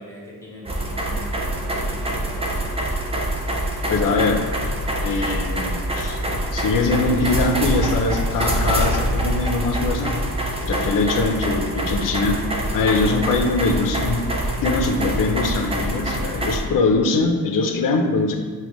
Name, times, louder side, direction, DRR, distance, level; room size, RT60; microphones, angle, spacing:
voice 1, 0.0-2.6, equal, 10° left, -6 dB, 0.9 m, -40 dB
sound 1, 0.7-16.6, right 1 dB, 15° right, 0.5 m, -25 dB
voice 2, 3.9-4.5 5.0-10.1 10.6-12.4 12.7-14.3 14.6-18.3, left 3 dB, 60° left, 4 dB, 0.5 m, -22 dB
4.1 x 2.2 x 3.0 m, 1.5 s
cardioid pair, 95°, 37 cm